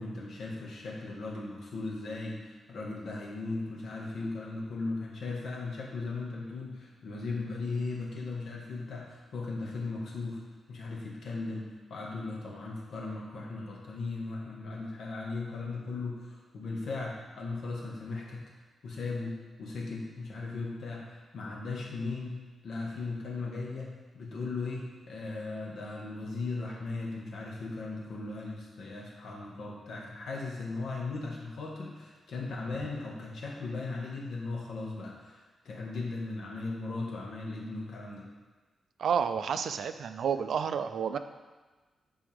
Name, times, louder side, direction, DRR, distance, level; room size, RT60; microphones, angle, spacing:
voice 1, 0.0-10.4 10.7-18.4 18.8-38.3, left 3 dB, 70° left, -3 dB, 1.6 m, -37 dB
voice 2, 39.0-41.2, right 7 dB, 75° right, 10 dB, 0.4 m, -30 dB
10.0 x 4.7 x 3.5 m, 1.3 s
wide cardioid pair, 145°, 0 cm